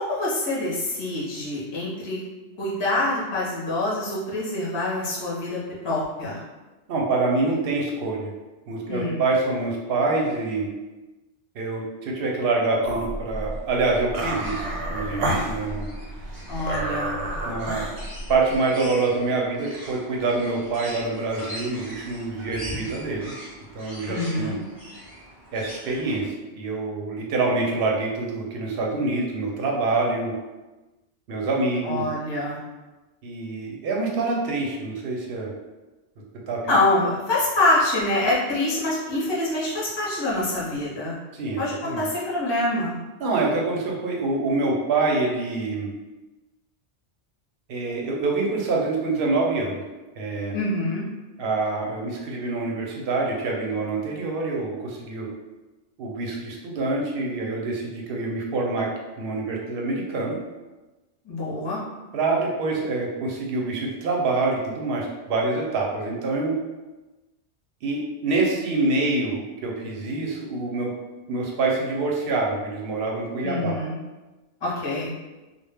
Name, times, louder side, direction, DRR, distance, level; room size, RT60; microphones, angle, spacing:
voice 1, 0.0-2.2 2.6-5.6 5.8-6.4 8.9-9.2 16.5-17.2 24.1-24.6 31.8-32.6 36.7-41.2 41.6-42.9 50.5-51.0 61.2-61.8 73.4-74.0 74.6-75.1, left 2 dB, 30° left, -6 dB, 0.5 m, -25 dB
voice 2, 6.9-8.3 8.7-10.7 11.5-15.9 17.5-17.8 18.3-23.3 23.7-24.6 25.5-30.3 31.3-32.1 33.2-35.5 36.5-36.8 41.3-42.1 43.2-45.9 47.7-49.8 50.2-50.6 51.4-55.3 56.0-58.9 59.2-60.4 62.1-66.6 67.8-70.9 71.3-73.8, right 3 dB, 65° right, -2 dB, 0.7 m, -26 dB
sound 1, 12.8-18.6, right 1 dB, 85° right, 0.9 m, -30 dB
sound 2, 14.1-26.3, equal, 25° right, 0.6 m, -41 dB
2.1 x 2.0 x 3.3 m, 1.1 s
omnidirectional pair, 1.2 m